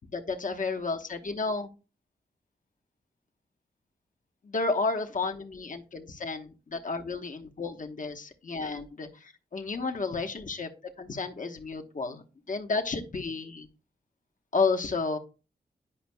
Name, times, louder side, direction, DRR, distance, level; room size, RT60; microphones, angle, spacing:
voice 1, 0.1-1.7 4.4-10.7 11.0-13.7 14.5-15.2, left 4 dB, 50° left, 5 dB, 1.1 m, -32 dB
10.0 x 5.1 x 2.2 m, 0.33 s
cardioid pair, 45°, 18 cm